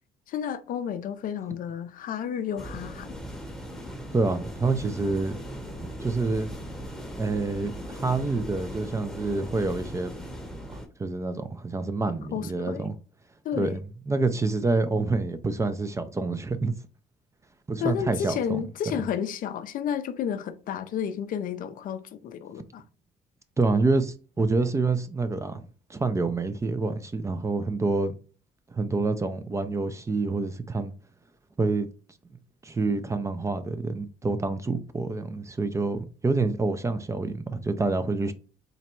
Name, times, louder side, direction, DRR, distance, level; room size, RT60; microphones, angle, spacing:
voice 1, 0.3-3.2 12.3-12.9 13.4-13.8 17.8-22.8, left 8 dB, 55° left, 0.4 m, -31 dB
sound 1, 2.6-10.9, equal, ahead, 0.8 m, -39 dB
voice 2, 4.1-5.4 5.8-6.5 7.2-10.2 10.7-12.9 13.6-13.8 14.1-16.7 17.7-18.6 23.6-25.6 25.9-28.1 28.7-30.9 31.6-31.9 32.6-38.3, right 3 dB, 15° right, 0.4 m, -27 dB
3.9 x 2.2 x 4.3 m
cardioid pair, 110°, 17 cm